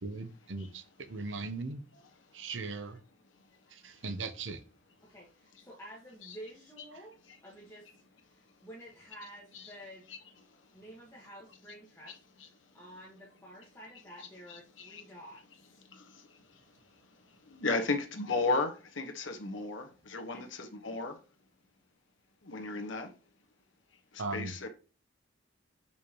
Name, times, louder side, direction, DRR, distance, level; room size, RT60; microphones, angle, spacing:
voice 1, 0.0-1.8 2.3-3.0 3.8-4.6 24.2-24.5, right 3 dB, 75° right, 0.8 m, -38 dB
voice 2, 5.0-7.2 7.4-10.0 10.7-12.2 12.5-15.8 17.7-18.0 20.3-20.5, equal, 15° left, 1.3 m, -51 dB
voice 3, 14.5-15.0 15.9-16.4 17.5-21.2 22.4-23.1 24.1-24.7, left 3 dB, 85° left, 1.2 m, -34 dB
6.5 x 5.6 x 2.9 m
head